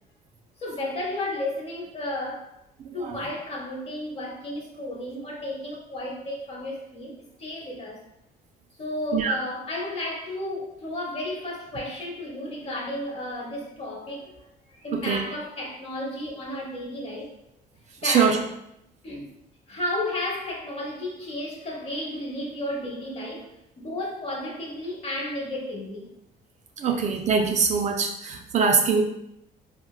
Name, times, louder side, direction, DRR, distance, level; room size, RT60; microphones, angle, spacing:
voice 1, 0.6-2.5 2.9-8.0 8.8-14.3 14.7-17.3 18.0-18.4 19.0-19.3 19.7-26.1 26.8-26.9, left 1 dB, 35° left, 0.9 m, -33 dB
voice 2, 14.9-15.2 18.0-18.4 26.8-29.0, right 5 dB, 45° right, 0.4 m, -23 dB
3.8 x 2.1 x 2.3 m
cardioid pair, 110°, 17 cm